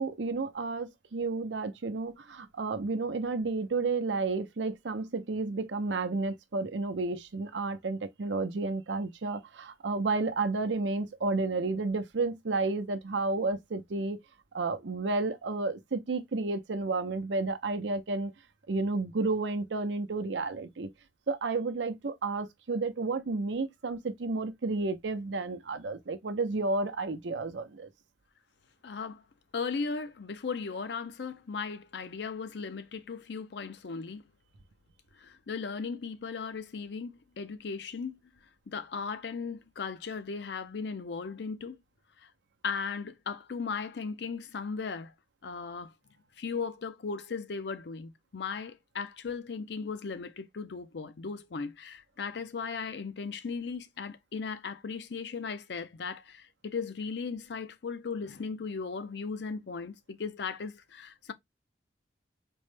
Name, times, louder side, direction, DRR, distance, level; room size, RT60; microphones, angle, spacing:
voice 1, 0.0-14.2 14.5-18.3 18.7-20.9 21.3-27.9, right 3 dB, 90° right, 0.6 m, -31 dB
voice 2, 28.8-29.2 29.5-34.2 35.2-38.2 38.7-41.8 42.2-42.3 42.6-45.1 45.4-45.9 46.4-61.3, left 5 dB, 70° left, 0.5 m, -37 dB
4.3 x 2.1 x 3.3 m
head